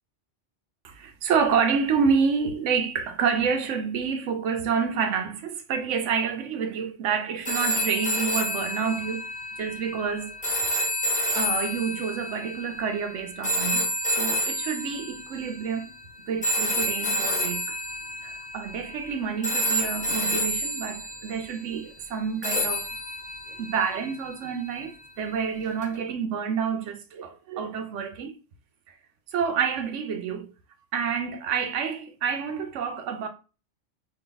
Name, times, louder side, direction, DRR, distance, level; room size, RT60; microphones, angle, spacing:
voice 1, 0.8-9.2 9.6-10.8 11.3-13.9 14.1-15.9 16.3-17.8 18.2-22.9 23.5-28.3 29.3-30.5 30.9-33.3, right 6 dB, 85° right, 1.0 m, -28 dB
sound 1, 7.5-15.7 16.4-19.1 19.4-21.6 22.4-24.7 25.8-25.9, equal, 5° left, 1.3 m, -29 dB
3.5 x 2.6 x 3.9 m
omnidirectional pair, 1.2 m